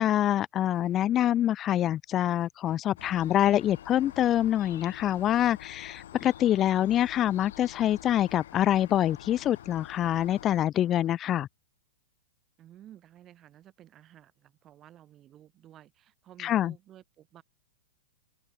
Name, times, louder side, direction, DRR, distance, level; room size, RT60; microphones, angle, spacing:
voice 1, 0.0-11.5 16.4-16.7, left 11 dB, 25° left, 0.4 m, -25 dB
sound 1, 3.0-10.7, left 11 dB, 70° left, 2.3 m, -47 dB
voice 2, 12.6-17.4, right 12 dB, 25° right, 3.1 m, -54 dB
open air
hypercardioid pair, 150°, 0 cm